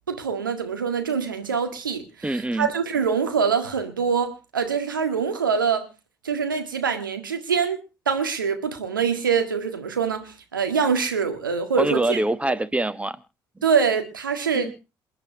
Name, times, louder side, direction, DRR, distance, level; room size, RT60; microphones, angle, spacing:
voice 1, 0.1-5.9 6.2-7.8 8.1-12.2 13.6-14.7, right 6 dB, 85° right, 1.7 m, -24 dB
voice 2, 2.2-2.7 11.8-13.2 14.5-14.7, right 1 dB, 10° right, 1.2 m, -24 dB
28.0 x 10.0 x 2.8 m
figure-of-eight pair, 45°, 11 cm